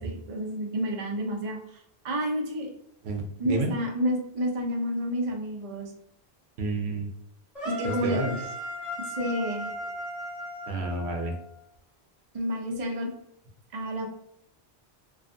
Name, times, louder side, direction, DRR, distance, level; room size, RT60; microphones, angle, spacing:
voice 1, 0.0-2.7 3.4-5.9 7.6-8.4 9.0-9.7 12.3-13.1 13.7-14.1, equal, 45° right, 1 dB, 0.5 m, -30 dB
voice 2, 3.0-3.7 6.6-7.1 7.8-8.3 10.7-11.3, right 2 dB, 80° right, 2 dB, 0.9 m, -30 dB
sound 1, 7.5-11.6, left 1 dB, ahead, 0.8 m, -37 dB
2.5 x 2.4 x 2.5 m, 0.73 s
omnidirectional pair, 1.1 m